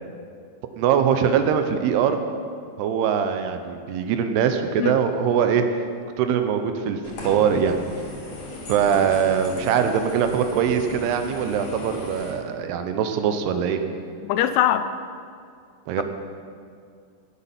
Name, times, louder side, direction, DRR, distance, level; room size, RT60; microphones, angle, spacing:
voice 1, 0.8-2.2 2.8-5.7 6.2-7.0 7.2-7.8 8.7-13.8 15.9-16.0, right 8 dB, 80° right, 7 dB, 2.7 m, -22 dB
sound 1, 7.0-12.3, left 2 dB, 55° left, 3.8 m, -37 dB
voice 2, 14.2-14.9, left 11 dB, 85° left, 11 dB, 2.7 m, -21 dB
16.5 x 8.3 x 5.8 m, 2.3 s
omnidirectional pair, 4.8 m